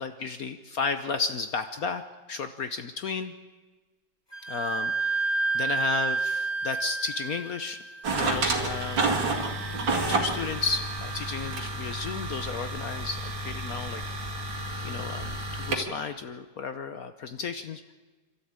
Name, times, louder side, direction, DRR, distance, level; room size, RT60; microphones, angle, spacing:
voice 1, 0.0-2.0 2.3-3.3 4.5-7.8 8.1-9.6 10.1-14.0 14.3-17.9, left 5 dB, 60° left, 9 dB, 1.2 m, -33 dB
Wind instrument woodwind instrument, 4.3-11.7, right 4 dB, 15° left, 1.9 m, -32 dB
sound 1, 8.0-15.8, right 2 dB, 90° right, 2.9 m, -30 dB
27.5 x 13.0 x 8.9 m, 1.3 s
omnidirectional pair, 2.0 m